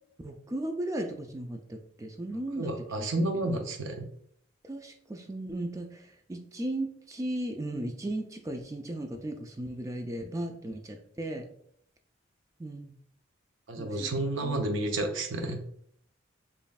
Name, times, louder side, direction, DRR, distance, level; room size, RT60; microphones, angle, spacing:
voice 1, 0.2-2.7 3.0-3.6 4.6-11.5 12.6-12.9 13.8-14.1 14.4-14.7, right 1 dB, 15° right, 4 dB, 0.3 m, -36 dB
voice 2, 2.6-4.1 13.7-15.6, right 2 dB, 80° right, 4 dB, 0.6 m, -31 dB
5.2 x 2.6 x 2.3 m, 0.65 s
head